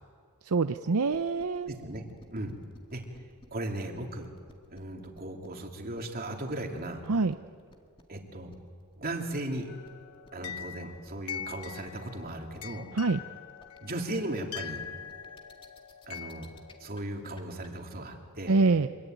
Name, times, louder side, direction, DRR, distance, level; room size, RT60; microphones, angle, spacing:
voice 1, 0.4-1.8 7.1-7.3 12.9-13.2 18.5-18.9, right 3 dB, 75° right, 9 dB, 0.7 m, -25 dB
sound 1, 1.1-17.7, left 2 dB, 25° left, 2.2 m, -56 dB
voice 2, 1.7-2.0 2.3-2.5 2.9-3.0 3.5-4.3 4.7-7.0 8.1-8.5 9.0-9.7 10.3-12.9 13.8-14.8 16.1-16.5 16.8-18.5, right 1 dB, 40° right, 2 dB, 3.1 m, -36 dB
sound 2, 9.7-16.9, left 8 dB, 80° left, 1.1 m, -43 dB
26.0 x 23.5 x 9.2 m, 2.1 s
head